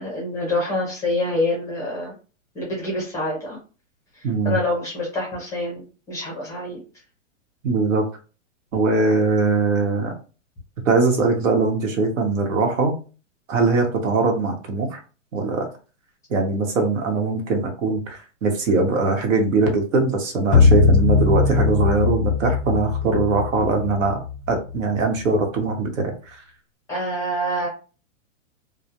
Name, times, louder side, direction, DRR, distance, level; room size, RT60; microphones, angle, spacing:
voice 1, 0.0-2.1 2.5-3.6 4.2-6.8 26.9-27.7, left 1 dB, 10° left, -3 dB, 0.5 m, -26 dB
voice 2, 4.2-4.6 7.6-8.0 8.7-10.1 10.8-13.0 13.5-15.0 15.3-15.7 16.3-24.2 24.5-26.4, right 3 dB, 80° right, 3 dB, 1.0 m, -21 dB
sound 1, 20.5-25.0, left 4 dB, 10° right, 0.9 m, -20 dB
2.3 x 2.1 x 2.8 m, 0.34 s
hypercardioid pair, 150°, 39 cm